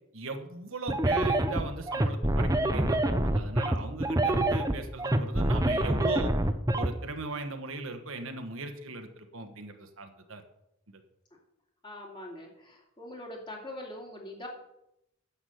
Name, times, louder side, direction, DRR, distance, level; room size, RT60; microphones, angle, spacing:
voice 1, 0.1-6.3 6.7-10.4 10.9-11.0, right 3 dB, 65° right, 7 dB, 1.3 m, -38 dB
sound 1, 0.9-6.9, right 1 dB, 15° right, 0.7 m, -26 dB
voice 2, 11.8-14.5, left 1 dB, 20° left, 0 dB, 2.5 m, -43 dB
10.0 x 7.3 x 7.8 m, 0.83 s
head